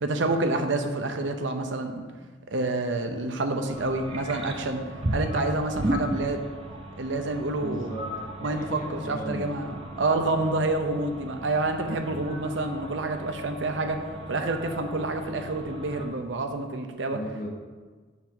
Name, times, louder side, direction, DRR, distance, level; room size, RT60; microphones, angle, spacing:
voice 1, 0.0-2.0 2.5-4.8 5.1-6.4 7.0-7.9 8.4-8.8 9.1-17.2, right 2 dB, 70° right, 6 dB, 0.7 m, -28 dB
sound 1, 3.7-16.1, right 1 dB, 30° right, 0.7 m, -36 dB
voice 2, 7.6-9.5 10.3-10.6 11.8-12.3 17.1-17.5, equal, 45° left, 0 dB, 1.2 m, -37 dB
7.2 x 4.1 x 5.8 m, 1.4 s
head